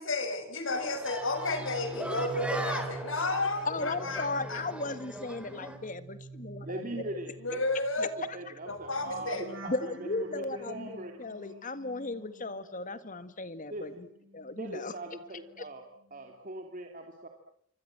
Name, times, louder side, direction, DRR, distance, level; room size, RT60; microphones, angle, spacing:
voice 1, 0.0-4.7 7.4-8.1 8.7-9.5, left 2 dB, 70° left, 7 dB, 5.9 m, -32 dB
sound 1, 0.7-5.8, right 1 dB, 5° right, 3.3 m, -39 dB
sound 2, 1.0-13.3 13.6-15.7 16.0-16.3, right 2 dB, 70° right, 4.9 m, -47 dB
voice 2, 3.6-7.2 8.3-8.4 9.7-14.1 14.3-14.9, left 3 dB, 40° left, 13 dB, 1.8 m, -36 dB
voice 3, 6.6-7.6 8.0-11.1 13.7-14.0 14.6-15.8 16.1-17.3, right 1 dB, 40° right, 3 dB, 2.9 m, -40 dB
27.0 x 25.0 x 7.6 m, 0.67 s
head